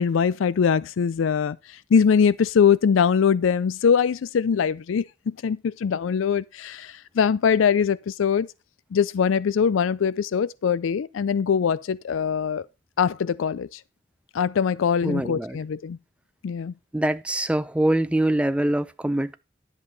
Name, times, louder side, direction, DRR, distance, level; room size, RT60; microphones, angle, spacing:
voice 1, 0.0-1.6 1.9-8.5 8.9-12.6 13.0-13.7 14.3-16.0 16.4-16.7, left 7 dB, 80° left, 0.4 m, -22 dB
voice 2, 15.0-15.6 16.9-19.3, right 1 dB, 5° right, 0.4 m, -24 dB
10.5 x 7.1 x 4.0 m
head